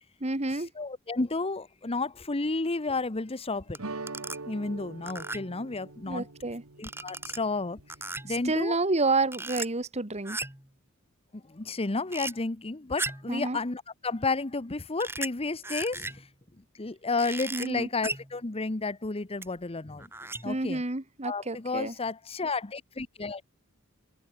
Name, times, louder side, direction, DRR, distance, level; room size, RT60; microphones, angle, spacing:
voice 1, 0.2-0.7 6.1-6.6 8.3-10.4 13.3-13.6 17.5-17.9 20.4-21.9, right 3 dB, 30° right, 1.8 m, -29 dB
voice 2, 0.8-3.8 4.5-6.3 6.8-7.8 8.2-8.8 11.3-16.3 16.8-20.1 20.4-20.8 21.2-23.5, left 3 dB, 30° left, 1.0 m, -32 dB
sound 1, 3.7-3.8 4.1-4.4 5.1-5.6 6.8-7.4 7.9-8.4 9.3-9.7 10.2-10.7 12.1-12.3 13.0-13.3 15.0-15.3 15.6-16.3 17.2-17.7 18.0-18.3 19.4-19.5 20.0-20.6, right 3 dB, 10° right, 2.7 m, -36 dB
sound 2, 3.8-8.6, right 3 dB, 80° right, 1.7 m, -44 dB
open air
head